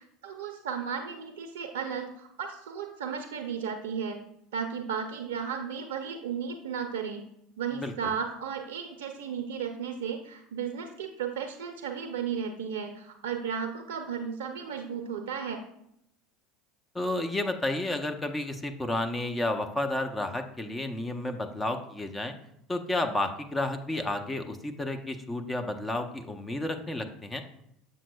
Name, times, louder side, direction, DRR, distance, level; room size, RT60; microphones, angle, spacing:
voice 1, 0.0-4.2 4.5-7.2 7.6-15.6, right 7 dB, 75° right, 5 dB, 0.5 m, -34 dB
voice 2, 7.7-8.1 16.9-22.3 22.7-27.4, left 1 dB, 15° left, 5 dB, 0.8 m, -31 dB
7.4 x 6.7 x 2.3 m, 0.77 s
hypercardioid pair, 75°, 0 cm